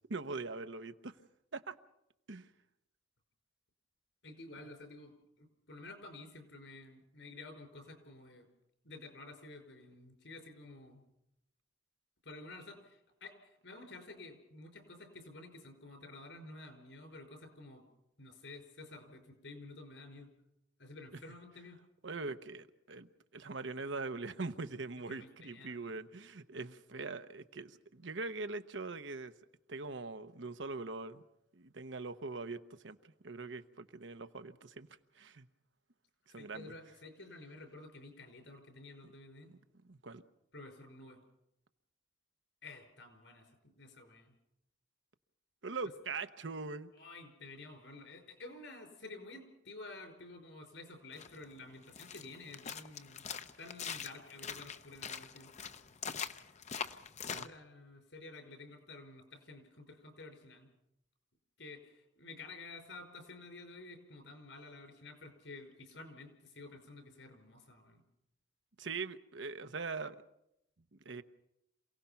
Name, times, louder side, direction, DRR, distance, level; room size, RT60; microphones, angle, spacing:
voice 1, 0.1-1.1 1.5-1.7 2.3-2.5 22.0-29.3 29.7-31.2 31.5-34.9 35.2-35.5 36.3-36.7 39.0-39.1 39.5-39.6 39.9-40.2 45.6-46.9 57.3-57.5 68.8-70.2 70.9-71.2, right 3 dB, 80° right, 1.0 m, -42 dB
voice 2, 4.2-5.1 5.4-8.5 8.8-11.0 12.2-17.8 18.2-20.3 20.8-21.8 25.1-26.0 36.3-39.5 40.5-41.2 42.6-44.3 46.9-53.2 53.6-55.5 57.3-60.7 61.6-68.0, left 2 dB, 75° left, 5.3 m, -51 dB
sound 1, 51.1-57.5, left 7 dB, 40° left, 0.7 m, -43 dB
27.5 x 17.5 x 5.8 m
head